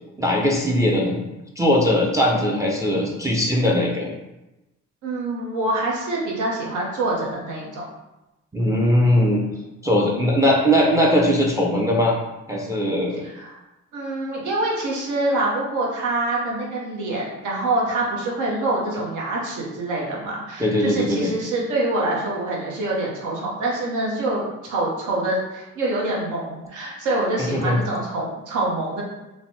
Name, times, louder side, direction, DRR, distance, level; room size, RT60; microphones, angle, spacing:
voice 1, 0.2-1.2 1.6-4.1 8.5-9.4 9.8-12.2 12.5-13.2 20.6-21.3 27.4-27.8, equal, 10° right, -1 dB, 0.4 m, -20 dB
voice 2, 5.0-7.9 13.2-13.6 13.9-29.0, right 2 dB, 80° right, -3 dB, 0.9 m, -25 dB
3.2 x 2.1 x 2.7 m, 0.99 s
cardioid pair, 90°, 30 cm